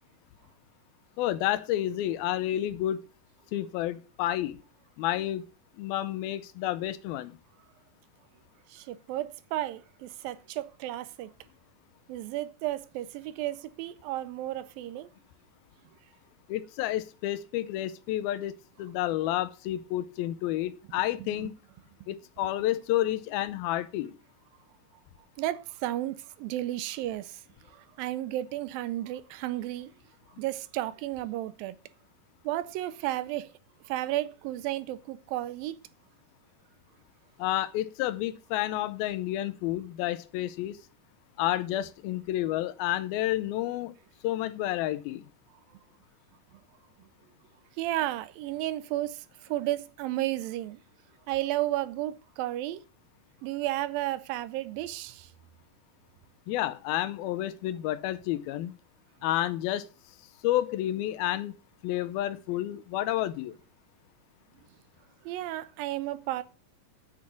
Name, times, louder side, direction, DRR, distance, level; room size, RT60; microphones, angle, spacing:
voice 1, 1.2-3.0 3.5-4.6 5.0-5.4 5.8-7.4 16.5-21.5 22.1-24.1 37.4-40.8 41.4-43.9 44.2-45.3 56.5-58.7 59.2-59.9 60.4-61.5 61.8-63.6, left 14 dB, 85° left, 2.6 m, -30 dB
voice 2, 8.7-11.3 12.1-15.1 21.2-21.5 25.4-29.9 30.4-31.8 32.4-33.5 33.9-35.8 46.5-46.6 47.8-50.8 51.3-52.8 53.4-55.3 65.2-66.4, right 15 dB, 80° right, 2.3 m, -33 dB
8.3 x 6.4 x 7.0 m
omnidirectional pair, 4.2 m